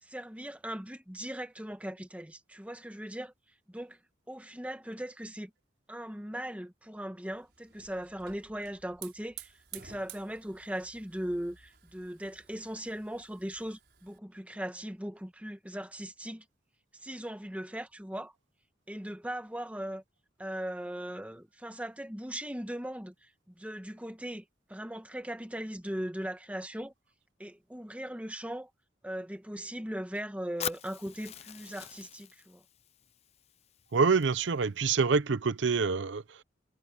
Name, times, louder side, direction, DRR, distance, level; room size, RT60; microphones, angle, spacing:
voice 1, 0.0-3.3 3.7-4.0 4.3-5.5 5.9-16.4 17.0-18.3 18.9-20.0 20.4-26.9 27.4-28.7 29.0-32.6, right 1 dB, 5° right, 1.3 m, -39 dB
Hiss / Fire, 7.3-14.2, right 10 dB, 60° right, 6.6 m, -52 dB
Fire, 30.6-34.6, left 9 dB, 35° left, 0.5 m, -43 dB
voice 2, 33.9-36.4, right 5 dB, 80° right, 0.6 m, -26 dB
head